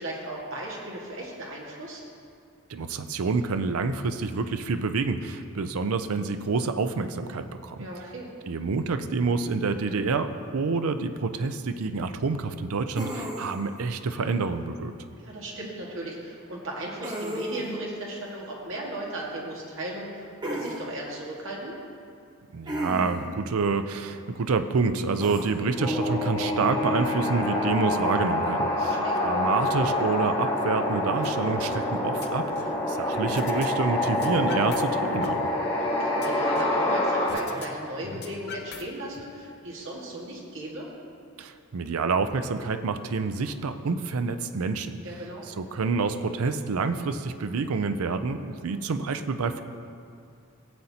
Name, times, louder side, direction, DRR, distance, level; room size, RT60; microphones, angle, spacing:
voice 1, 0.0-2.0 7.8-8.3 15.2-21.8 28.9-29.2 35.8-40.9 45.0-45.5, right 1 dB, 60° right, -4 dB, 1.8 m, -36 dB
voice 2, 2.7-7.9 8.4-14.9 22.5-29.0 29.2-32.5 32.9-35.5 41.4-45.0 45.5-49.6, right 4 dB, 75° right, 9 dB, 0.5 m, -28 dB
sound 1, 12.9-13.7 17.0-17.8 20.4-20.8 22.7-23.3 25.2-25.5, right 1 dB, 20° right, 1.0 m, -33 dB
sound 2, 25.8-37.3, left 1 dB, 25° left, 1.6 m, -26 dB
sound 3, 31.2-31.4 31.7-32.8 33.3-33.7 33.9-34.8 35.1-36.8 37.3-37.7 37.9-39.2, left 5 dB, 45° left, 0.6 m, -41 dB
15.5 x 7.9 x 2.9 m, 2.4 s
head